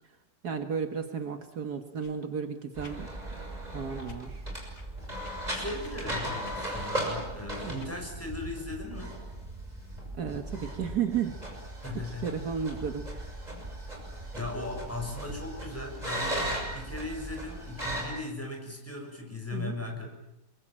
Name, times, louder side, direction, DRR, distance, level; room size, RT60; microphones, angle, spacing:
voice 1, 0.4-3.1 3.7-4.4 7.6-7.7 10.2-11.4 11.9-13.3 19.5-19.8, right 7 dB, 65° right, 7 dB, 2.1 m, -33 dB
sound 1, 2.0-2.2 2.8-3.0 4.0-4.2 4.7-4.9 5.2-5.3 5.8-6.0 6.4-6.6 7.1-7.2 7.8-7.9, left 3 dB, 90° left, 3.1 m, -51 dB
sound 2, 2.7-18.1, right 1 dB, 20° right, 6.9 m, -37 dB
voice 2, 5.5-9.2 11.8-12.3 14.3-20.1, left 2 dB, 10° left, 1 dB, 6.7 m, -38 dB
28.0 x 23.0 x 9.0 m, 0.89 s
omnidirectional pair, 1.8 m